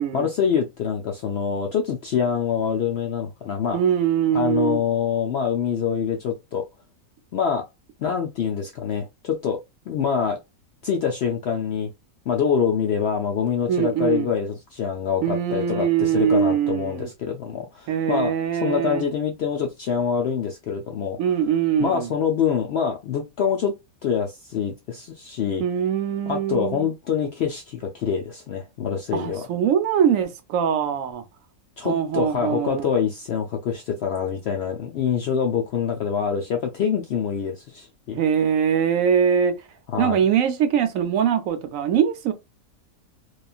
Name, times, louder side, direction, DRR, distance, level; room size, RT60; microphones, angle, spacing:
voice 1, 0.1-3.8 4.3-6.7 7.3-7.7 8.0-10.4 10.8-11.9 12.3-21.2 21.8-23.7 24.0-25.6 26.3-29.5 31.8-38.2 39.9-40.2, left 7 dB, 70° left, 0.6 m, -25 dB
voice 2, 3.7-4.8 13.7-14.3 15.2-17.1 17.9-19.0 21.2-22.1 25.6-26.9 29.1-31.2 31.8-32.9 38.1-39.5 40.0-42.3, right 8 dB, 70° right, 0.9 m, -22 dB
3.0 x 2.4 x 2.3 m
omnidirectional pair, 1.5 m